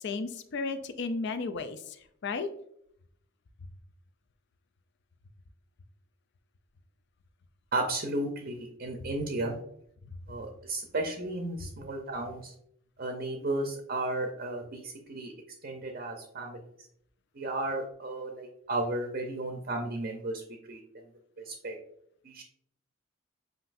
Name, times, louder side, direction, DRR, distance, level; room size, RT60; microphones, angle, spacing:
voice 1, 0.0-1.8 2.2-2.5, left 4 dB, 55° left, 10 dB, 0.4 m, -33 dB
voice 2, 7.7-9.5 10.3-12.5 13.0-15.3 15.6-16.6 17.3-20.4 20.7-20.8 21.5-21.7 22.2-22.4, right 2 dB, 45° right, 3 dB, 0.6 m, -34 dB
7.6 x 2.6 x 2.5 m, 0.70 s
head